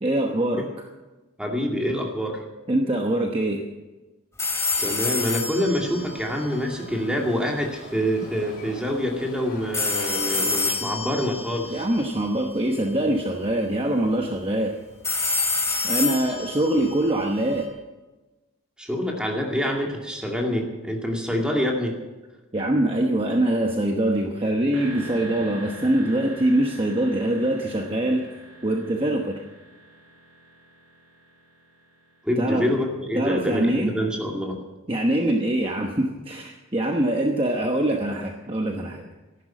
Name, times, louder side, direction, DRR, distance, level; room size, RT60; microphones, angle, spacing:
voice 1, 0.0-0.6 2.7-3.6 11.7-14.8 15.8-17.7 22.5-28.3 28.6-29.4 32.4-32.7 33.1-33.9 34.9-39.1, right 1 dB, 25° right, 2 dB, 1.0 m, -23 dB
voice 2, 1.4-2.4 4.8-11.9 18.8-22.0 32.2-34.6, equal, 5° right, 0 dB, 2.3 m, -26 dB
sound 1, 4.4-7.4 9.7-12.9 15.0-17.6, left 3 dB, 15° left, 2.8 m, -28 dB
sound 2, 4.7-10.7, left 1 dB, 40° left, 4.2 m, -44 dB
sound 3, 24.7-32.5, right 1 dB, 75° right, 6.0 m, -43 dB
14.5 x 11.5 x 7.4 m, 1.1 s
head